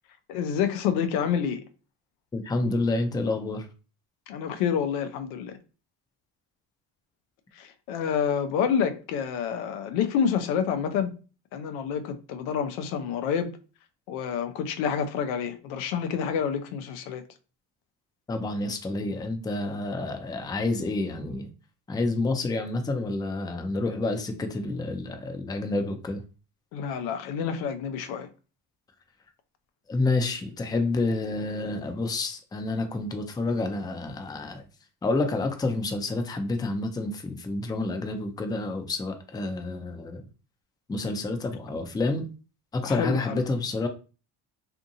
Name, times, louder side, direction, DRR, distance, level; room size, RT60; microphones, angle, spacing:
voice 1, 0.3-1.6 4.3-5.6 7.5-11.1 11.5-13.5 14.1-17.2 26.7-28.3 42.8-43.4, left 7 dB, 90° left, 0.6 m, -28 dB
voice 2, 2.3-3.7 18.3-21.5 21.9-26.2 29.9-34.6 35.0-40.2 40.9-42.3 42.7-43.9, left 2 dB, 10° left, 0.4 m, -29 dB
2.6 x 2.6 x 2.6 m
supercardioid pair, 70°, 49 cm